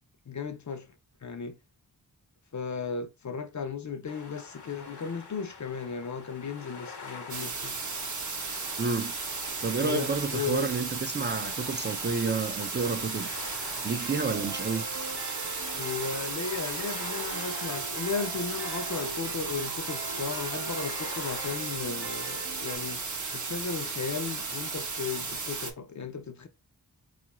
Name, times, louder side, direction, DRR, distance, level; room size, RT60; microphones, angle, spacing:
voice 1, 0.3-0.9 1.2-1.6 2.5-7.8 9.8-10.7 15.8-23.0 23.3-26.5, left 5 dB, 45° left, 0.5 m, -35 dB
sound 1, 4.0-21.6, left 4 dB, 75° left, 0.9 m, -46 dB
sound 2, 7.3-25.7, right 4 dB, 45° right, 0.7 m, -35 dB
voice 2, 8.8-9.1 9.6-13.3 13.8-14.9, right 4 dB, 30° right, 0.4 m, -30 dB
sound 3, 14.0-22.8, right 5 dB, 80° right, 0.7 m, -42 dB
3.8 x 2.4 x 2.9 m
cardioid pair, 50°, 40 cm